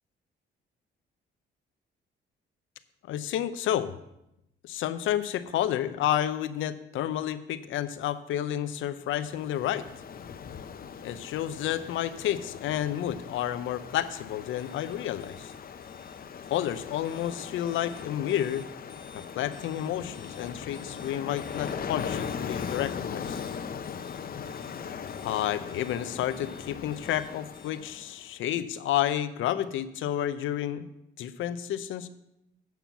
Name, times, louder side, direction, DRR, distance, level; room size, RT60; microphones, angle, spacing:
voice 1, 3.1-3.9 4.6-9.9 11.0-15.5 16.5-18.7 19.1-23.4 25.2-30.9 31.2-32.1, left 11 dB, 80° left, 12 dB, 0.7 m, -30 dB
Ocean, 9.1-28.3, left 7 dB, 50° left, 0.7 m, -39 dB
sound 1, 14.6-27.7, left 3 dB, 25° left, 1.3 m, -56 dB
9.2 x 5.8 x 7.0 m, 0.83 s
cardioid pair, 90°, 20 cm